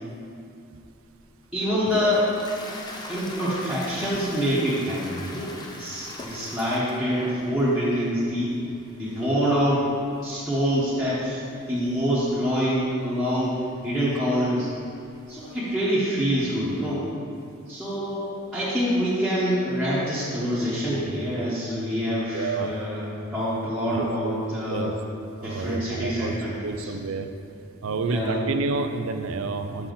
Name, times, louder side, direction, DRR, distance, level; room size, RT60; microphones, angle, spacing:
Toilet flush, 1.1-15.5, left 1 dB, 20° left, 0.5 m, -44 dB
voice 1, 1.5-2.3 3.1-5.5 5.8-8.5 9.0-9.8 10.2-11.4 11.7-13.6 13.8-14.7 15.3-17.0 17.7-18.3 18.5-24.9 25.4-26.9 27.9-28.4, equal, ahead, -13 dB, 1.1 m, -25 dB
voice 2, 22.3-22.7 23.9-24.4 24.7-24.9 25.4-26.3 26.6-27.3 27.8-29.9, right 3 dB, 75° right, 8 dB, 0.4 m, -29 dB
7.0 x 5.7 x 3.9 m, 2.5 s
head